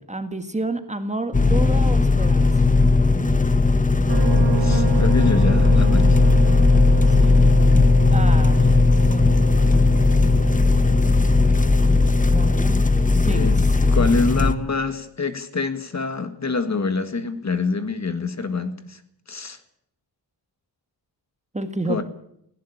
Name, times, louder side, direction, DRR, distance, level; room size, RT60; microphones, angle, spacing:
voice 1, 0.0-2.7 7.1-8.8 9.1-10.6 12.2-12.7 13.1-13.7 21.5-22.0, right 2 dB, 15° right, 8 dB, 1.7 m, -31 dB
sound 1, 1.3-14.5, left 3 dB, 20° left, 1.1 m, -17 dB
sound 2, 4.1-12.6, right 8 dB, 80° right, 1.5 m, -32 dB
voice 2, 4.6-6.2 13.3-13.6 13.9-19.0 19.3-19.6 21.9-22.0, left 4 dB, 40° left, 10 dB, 1.9 m, -25 dB
18.0 x 16.5 x 8.7 m, 0.71 s
wide cardioid pair, 150°, 43 cm